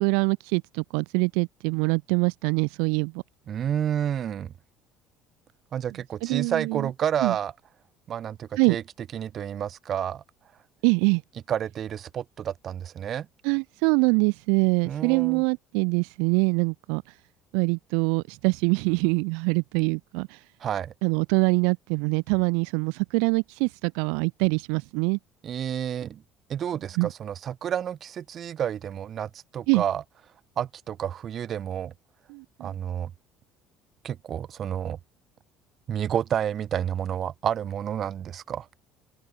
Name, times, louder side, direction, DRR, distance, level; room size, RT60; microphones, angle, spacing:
voice 1, 0.0-3.2 6.2-6.9 7.2-7.4 8.6-8.8 10.8-11.2 13.4-17.2 17.5-20.4 21.0-25.2 27.0-27.1 29.7-29.8 32.3-32.8, right 38 dB, 65° right, 1.2 m, -24 dB
voice 2, 3.5-4.5 5.7-7.5 8.1-8.8 9.1-10.2 11.5-13.3 14.8-15.4 20.6-20.9 25.4-26.2 26.5-30.0 30.6-31.9 32.6-33.1 34.0-35.0 35.9-38.7, right 9 dB, 45° right, 1.8 m, -30 dB
open air
figure-of-eight pair, 60°, 0 cm